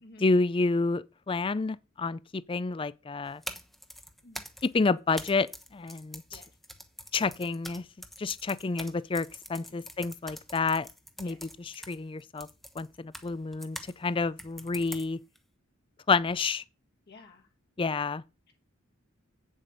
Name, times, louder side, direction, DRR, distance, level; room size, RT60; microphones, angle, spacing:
voice 1, 0.2-3.4 4.6-5.5 5.7-6.2 7.1-7.8 8.2-10.9 11.2-12.5 12.8-15.2 16.1-16.6 17.8-18.2, left 3 dB, 25° left, 0.4 m, -29 dB
sound 1, 3.3-13.9 14.4-15.4, equal, ahead, 1.0 m, -45 dB
voice 2, 17.1-17.5 18.5-18.6, left 2 dB, 55° left, 1.5 m, -53 dB
8.5 x 7.2 x 5.3 m
head